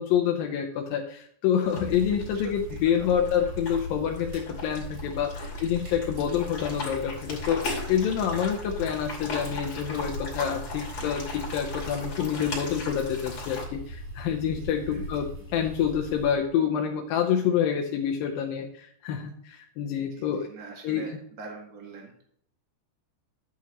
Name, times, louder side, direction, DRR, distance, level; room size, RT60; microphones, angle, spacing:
voice 1, 0.0-20.5 20.8-21.0, left 8 dB, 80° left, 2 dB, 2.0 m, -27 dB
sound 1, 1.6-13.6, left 3 dB, 40° left, 3.4 m, -38 dB
sound 2, 1.8-16.3, equal, 85° right, 6.7 m, -39 dB
voice 2, 2.7-3.3 11.7-11.8 14.9-15.1 19.9-22.2, right 4 dB, 60° right, 0 dB, 0.9 m, -45 dB
11.5 x 8.5 x 3.0 m, 0.65 s
omnidirectional pair, 5.1 m